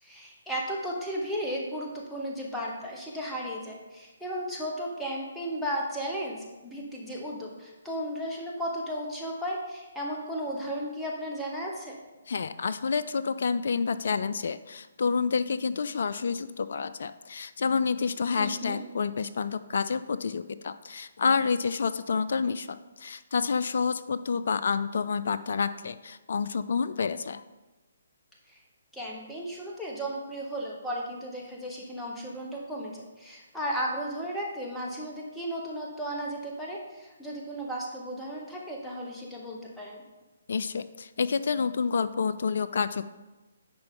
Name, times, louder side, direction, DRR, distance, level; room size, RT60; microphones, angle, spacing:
voice 1, 0.0-6.4 6.6-11.9 18.4-18.8 28.5-28.6 28.9-40.0, equal, 5° left, -4 dB, 1.1 m, -35 dB
voice 2, 12.3-27.4 40.5-43.1, left 5 dB, 60° left, 12 dB, 0.3 m, -29 dB
10.5 x 4.4 x 3.8 m, 1.1 s
figure-of-eight pair, 140°, 0 cm